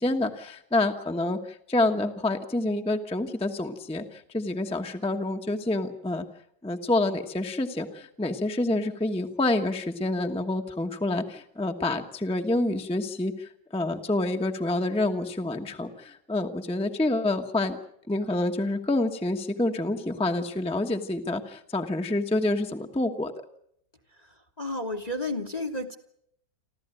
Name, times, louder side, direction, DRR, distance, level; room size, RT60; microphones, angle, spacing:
voice 1, 0.0-6.2 6.6-17.8 18.1-23.3, left 2 dB, 5° left, 5 dB, 0.9 m, -28 dB
voice 2, 24.2-26.0, left 2 dB, 25° left, 7 dB, 1.1 m, -32 dB
28.5 x 13.0 x 9.1 m, 0.73 s
omnidirectional pair, 2.1 m